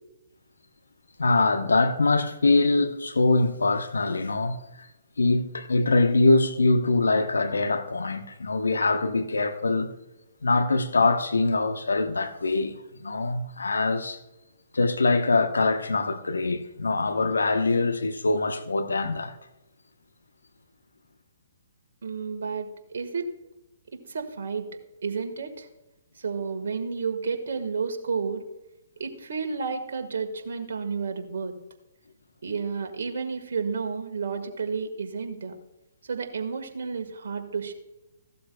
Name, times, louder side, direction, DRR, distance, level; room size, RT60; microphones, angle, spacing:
voice 1, 1.2-4.6 5.2-9.9 10.4-14.2 14.7-19.4, left 3 dB, 80° left, 1.0 m, -23 dB
voice 2, 22.0-23.3 23.9-24.7 25.0-25.7 26.1-28.4 29.0-31.6 32.4-35.5 36.0-37.7, right 5 dB, 65° right, 1.5 m, -31 dB
15.5 x 12.0 x 2.3 m
figure-of-eight pair, 125°, 0 cm